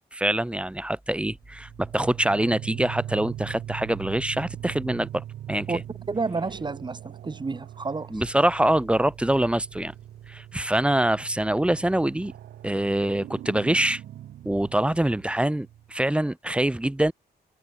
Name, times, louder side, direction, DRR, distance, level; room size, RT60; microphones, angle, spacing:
voice 1, 0.0-5.7 8.1-9.9 10.3-12.3 12.6-14.0 14.5-17.1, right 1 dB, 5° right, 0.5 m, -24 dB
sound 1, 1.4-16.0, right 12 dB, 80° right, 0.6 m, -41 dB
voice 2, 6.1-8.1, right 4 dB, 25° right, 1.3 m, -30 dB
cardioid pair, 90°, 17 cm